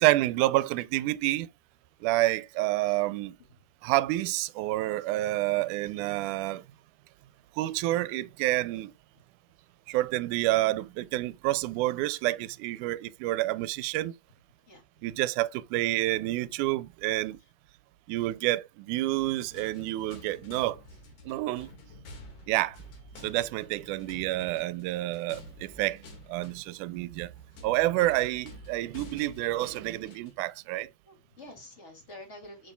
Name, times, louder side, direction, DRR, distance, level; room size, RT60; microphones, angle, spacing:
voice 1, 0.0-1.5 2.0-3.3 3.8-6.6 7.6-8.9 9.9-14.1 15.0-17.4 18.1-20.8 21.3-21.7 22.5-22.8 23.2-26.0 26.3-27.3 27.6-30.9, right 17 dB, 85° right, 2.0 m, -28 dB
sound 1, 19.0-30.4, equal, 80° left, 3.6 m, -49 dB
voice 2, 31.1-32.7, left 1 dB, 25° left, 2.2 m, -48 dB
6.9 x 6.6 x 2.2 m
omnidirectional pair, 3.5 m